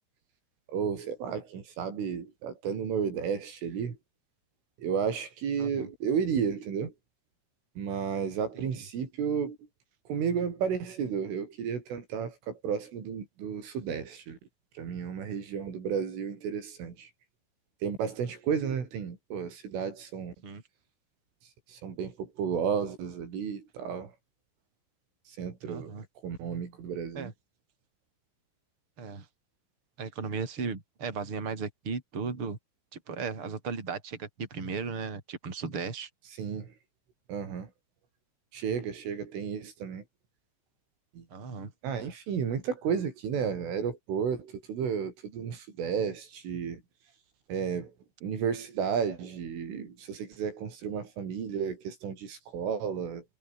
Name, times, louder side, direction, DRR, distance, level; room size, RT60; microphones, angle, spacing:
voice 1, 0.7-4.0 4.8-6.9 7.8-9.6 10.1-14.4 14.8-17.1 17.8-20.3 21.7-24.1 25.4-25.9 26.2-27.3 36.4-36.7 37.3-37.7 38.5-40.0 41.2-41.3 41.8-46.8 47.5-47.9 48.2-53.2, right 7 dB, 70° right, 7.0 m, -32 dB
voice 2, 5.6-5.9 20.4-20.6 25.7-26.0 27.2-27.3 29.0-29.3 30.0-32.6 32.9-36.1 41.3-41.7, right 5 dB, 25° right, 5.3 m, -36 dB
omnidirectional pair, 5.9 m